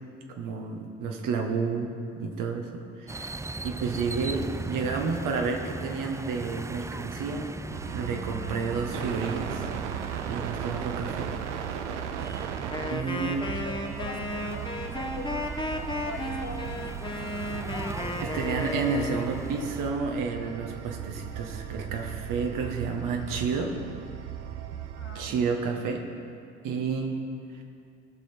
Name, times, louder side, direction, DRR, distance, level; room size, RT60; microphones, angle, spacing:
voice 1, 0.4-7.5 7.9-9.7 10.3-11.3 12.9-13.5 18.2-23.7 25.1-26.0 26.6-27.2, right 5 dB, 65° right, 3 dB, 1.4 m, -30 dB
sound 1, 3.1-19.9, right 2 dB, 10° right, 0.4 m, -39 dB
sound 2, 7.7-25.4, right 9 dB, 85° right, 0.6 m, -37 dB
Wind instrument woodwind instrument, 12.7-19.4, left 1 dB, 15° left, 1.3 m, -34 dB
voice 2, 13.5-17.4 24.9-25.5, left 3 dB, 40° left, 4 dB, 1.4 m, -44 dB
17.5 x 6.4 x 4.5 m, 2.4 s
hypercardioid pair, 45°, 34 cm